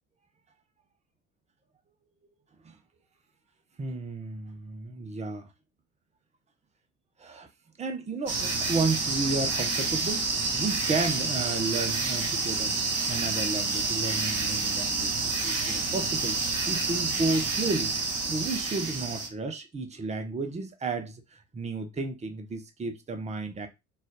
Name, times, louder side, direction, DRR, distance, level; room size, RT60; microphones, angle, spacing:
voice 1, 3.8-5.5 7.2-7.5 7.8-10.3 10.5-12.7 13.1-16.4 16.7-17.9 18.3-23.7, right 3 dB, 15° right, 0.8 m, -32 dB
sound 1, 8.3-19.3, right 4 dB, 35° right, 2.2 m, -29 dB
4.2 x 2.5 x 3.7 m
figure-of-eight pair, 65°, 42 cm